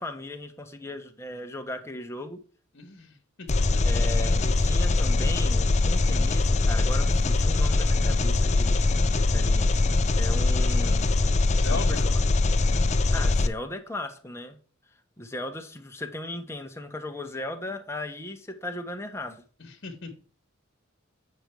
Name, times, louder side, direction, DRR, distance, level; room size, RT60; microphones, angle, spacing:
voice 1, 0.0-2.4 3.8-8.8 9.2-9.7 10.1-11.2 11.7-12.1 13.1-14.6 15.2-19.4, left 1 dB, 15° left, 1.2 m, -37 dB
voice 2, 2.7-3.5 3.7-3.8 11.5-12.1 19.6-20.1, left 4 dB, 60° left, 1.4 m, -37 dB
Engine, 3.5-13.5, left 2 dB, 35° left, 0.5 m, -22 dB
8.2 x 5.3 x 4.7 m
head